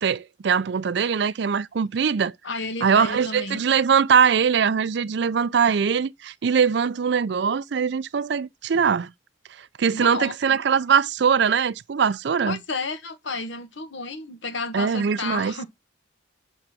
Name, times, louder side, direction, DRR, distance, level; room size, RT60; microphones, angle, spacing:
voice 1, 0.0-2.3 2.8-9.1 9.8-12.6 14.7-15.5, right 6 dB, 60° right, 0.4 m, -22 dB
voice 2, 2.4-3.6 9.9-10.3 12.4-15.7, left 3 dB, 70° left, 1.3 m, -32 dB
8.8 x 3.9 x 6.0 m
head